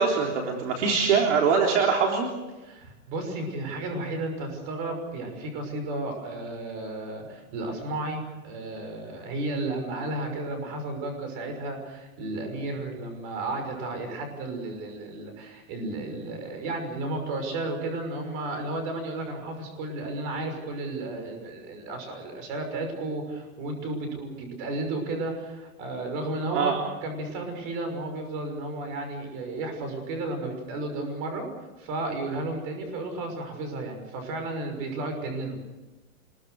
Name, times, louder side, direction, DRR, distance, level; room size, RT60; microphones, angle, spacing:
voice 1, 0.0-2.3 26.5-26.7, right 5 dB, 60° right, 1 dB, 3.8 m, -23 dB
voice 2, 2.6-26.7 27.0-31.5 31.8-35.7, right 2 dB, 35° right, 5 dB, 6.2 m, -33 dB
25.5 x 22.0 x 6.5 m, 1.1 s
supercardioid pair, 170°, 42 cm